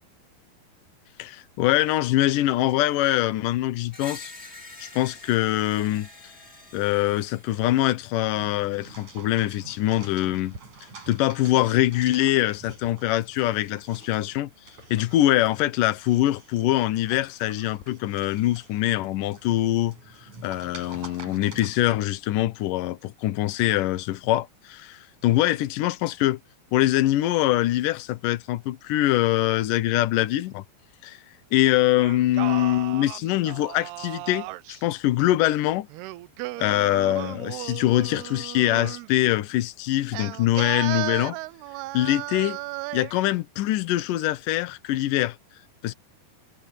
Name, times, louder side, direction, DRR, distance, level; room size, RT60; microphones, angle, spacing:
voice 1, 1.2-4.3 4.8-6.1 6.7-10.6 11.1-14.5 14.9-20.0 20.2-26.4 26.7-30.6 31.0-31.2 31.5-35.9 36.6-41.4 41.9-42.6 42.9-45.4 45.8-45.9, left 15 dB, 70° left, 2.1 m, -23 dB
Screech, 3.9-7.9, left 2 dB, 20° left, 2.6 m, -45 dB
sound 1, 8.4-21.8, right 3 dB, 40° right, 9.5 m, -47 dB
Singing, 32.0-34.8 35.9-39.1 40.1-43.2, right 19 dB, 80° right, 2.5 m, -35 dB
omnidirectional pair, 5.0 m